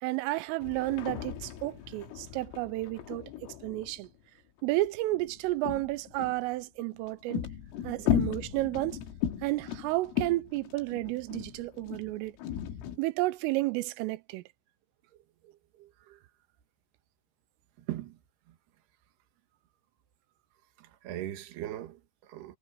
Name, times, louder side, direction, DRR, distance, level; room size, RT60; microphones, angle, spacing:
voice 1, 0.0-3.3 3.6-4.1 4.6-7.4 7.8-9.0 9.4-12.4 13.0-14.4, right 19 dB, 90° right, 3.4 m, -31 dB
sound 1, 0.6-4.1 4.6-6.5 6.9-13.0, left 10 dB, 80° left, 4.2 m, -36 dB
voice 2, 15.1-16.2 17.8-18.2 18.5-18.6 20.8-22.6, right 13 dB, 65° right, 3.3 m, -41 dB
omnidirectional pair, 5.8 m